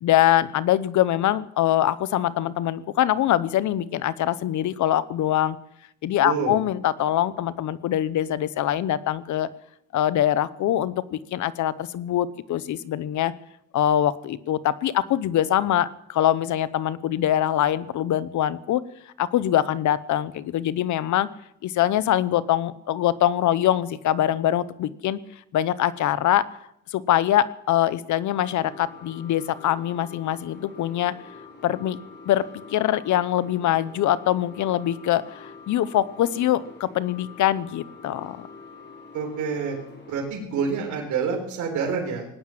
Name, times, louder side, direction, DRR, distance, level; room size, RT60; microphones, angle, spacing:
voice 1, 0.0-5.6 6.0-9.5 9.9-13.3 13.7-18.8 19.2-21.3 21.6-25.2 25.5-26.5 26.9-31.1 31.6-32.0 32.3-38.5, left 12 dB, 75° left, 17 dB, 0.9 m, -23 dB
voice 2, 6.2-6.6 39.1-39.7 40.1-42.3, right 5 dB, 75° right, 0 dB, 4.0 m, -27 dB
sound 1, 28.3-40.2, left 4 dB, 35° left, 3.2 m, -46 dB
18.5 x 9.5 x 7.6 m, 0.78 s
cardioid pair, 90°, 30 cm